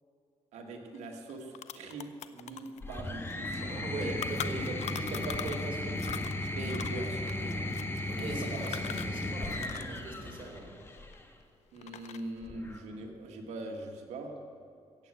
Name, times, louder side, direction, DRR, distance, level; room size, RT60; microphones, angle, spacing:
voice 1, 0.5-4.1 6.5-7.6 8.2-8.6 11.7-14.4, right 2 dB, 90° right, 2 dB, 1.8 m, -42 dB
sound 1, 1.0-1.1 1.3-5.7 6.0-10.0 10.2-11.4 11.8-12.4, left 10 dB, 80° left, 0.6 m, -42 dB
sound 2, 2.8-11.2 12.4-13.1, left 1 dB, 20° left, 1.5 m, -36 dB
voice 2, 3.7-6.1 8.1-10.7, right 2 dB, 50° right, 0 dB, 4.0 m, -40 dB
15.0 x 8.9 x 7.6 m, 2.5 s
cardioid pair, 95°, 11 cm